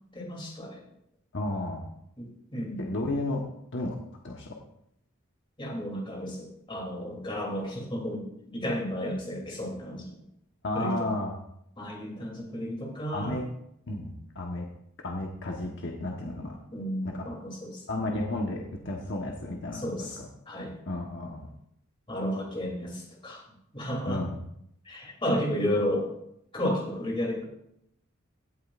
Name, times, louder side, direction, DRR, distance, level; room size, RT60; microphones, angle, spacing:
voice 1, 0.1-0.8 2.2-2.9 5.6-10.2 10.7-11.1 11.8-13.4 16.7-17.8 19.7-20.7 22.1-23.4 23.7-24.2 24.8-26.1 26.5-27.4, equal, 25° left, -1 dB, 3.0 m, -32 dB
voice 2, 1.3-1.9 2.8-3.4 3.7-3.9 4.2-4.6 10.6-11.3 13.1-13.4 13.9-14.7 15.0-16.6 17.0-17.2 17.9-19.8 20.2-20.3 20.9-21.5 24.1-24.4, left 1 dB, 65° left, 0 dB, 1.2 m, -32 dB
17.0 x 8.7 x 2.5 m, 0.75 s
head